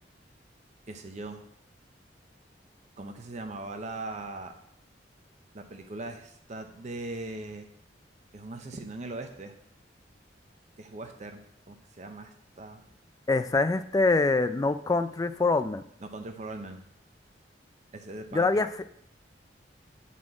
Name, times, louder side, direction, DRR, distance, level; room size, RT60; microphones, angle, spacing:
voice 1, 0.9-1.4 3.0-4.5 5.5-7.7 8.3-9.5 10.8-12.8 16.0-16.8 17.9-18.5, right 2 dB, 40° right, 6 dB, 0.6 m, -40 dB
voice 2, 13.3-15.8 18.3-18.7, left 3 dB, 20° left, 11 dB, 0.3 m, -24 dB
9.0 x 4.2 x 4.8 m, 0.72 s
head